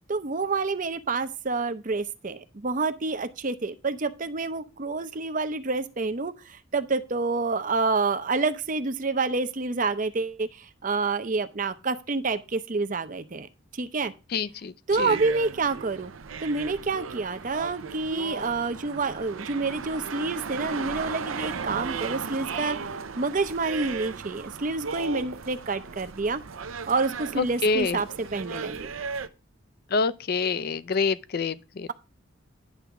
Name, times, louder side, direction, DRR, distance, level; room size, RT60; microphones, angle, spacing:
voice 1, 0.1-13.5 13.7-14.1 14.9-16.1 16.4-26.4 26.9-28.9, right 3 dB, 40° right, 0.6 m, -28 dB
voice 2, 14.3-14.7 15.0-15.1 27.4-28.0 29.9-31.9, left 4 dB, 50° left, 0.4 m, -26 dB
sound 1, 14.9-29.3, right 5 dB, 85° right, 0.6 m, -36 dB
10.0 x 3.5 x 7.0 m
head